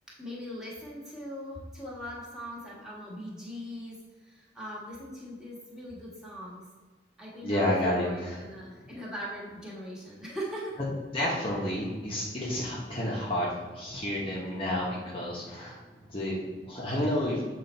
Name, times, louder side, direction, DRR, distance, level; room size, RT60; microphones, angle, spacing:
voice 1, 0.2-6.6 7.2-10.7, equal, 5° right, -7 dB, 1.5 m, -40 dB
voice 2, 7.4-8.4 11.1-15.8 16.1-17.4, left 1 dB, 30° left, -5 dB, 0.9 m, -30 dB
7.4 x 3.1 x 4.3 m, 1.3 s
head